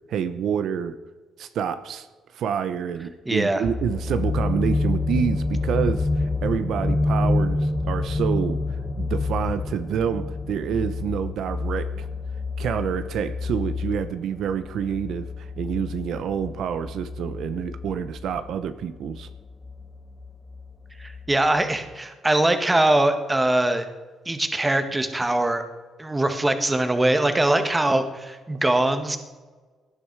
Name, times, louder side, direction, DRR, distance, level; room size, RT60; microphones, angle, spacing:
voice 1, 0.1-1.0 1.4-2.1 2.3-8.6 9.0-12.1 12.6-19.3, right 8 dB, 75° right, 11 dB, 0.8 m, -28 dB
voice 2, 3.2-3.6 21.0-23.8 24.2-25.6 26.0-29.2, right 1 dB, 15° right, 8 dB, 1.6 m, -22 dB
sound 1, 3.6-21.5 21.9-22.0, left 3 dB, 20° left, 1.5 m, -28 dB
18.0 x 10.0 x 4.7 m, 1.4 s
cardioid pair, 90°, 0 cm